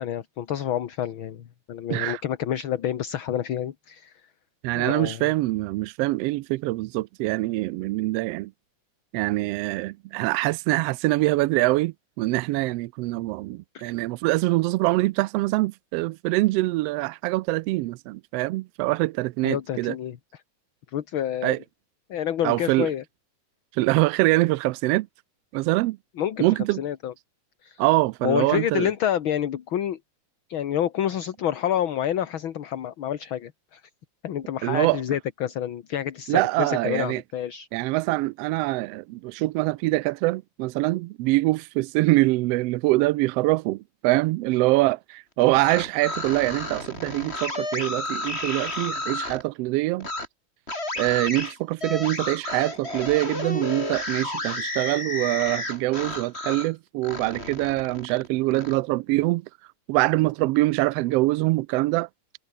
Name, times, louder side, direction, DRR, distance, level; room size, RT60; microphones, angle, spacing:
voice 1, 0.0-4.1 4.7-5.3 19.4-20.2 20.9-21.6 22.1-23.0 26.2-26.5 26.8-27.1 27.6-27.8 28.2-30.0 30.5-33.8 34.2-37.7, left 10 dB, 55° left, 1.7 m, -28 dB
voice 2, 1.9-2.2 4.6-8.5 9.1-19.9 21.4-21.6 22.4-22.9 23.7-25.1 25.5-26.0 26.4-26.8 27.8-28.9 34.6-35.0 36.3-37.2 37.7-50.1 51.0-59.4 59.9-62.1, right 20 dB, 85° right, 1.4 m, -24 dB
sound 1, 45.4-49.4 50.0-50.3 50.7-56.7 57.0-58.8, left 2 dB, 20° left, 5.7 m, -32 dB
omnidirectional pair, 3.3 m